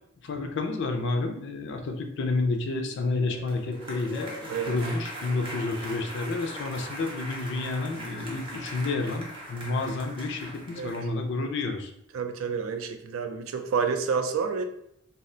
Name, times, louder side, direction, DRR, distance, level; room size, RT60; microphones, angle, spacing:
voice 1, 0.2-11.9, left 3 dB, 60° left, 5 dB, 0.4 m, -30 dB
sound 1, 3.2-11.1, equal, 25° right, 0.6 m, -40 dB
voice 2, 12.1-14.6, right 6 dB, 80° right, 7 dB, 0.4 m, -29 dB
2.4 x 2.1 x 3.7 m, 0.73 s
head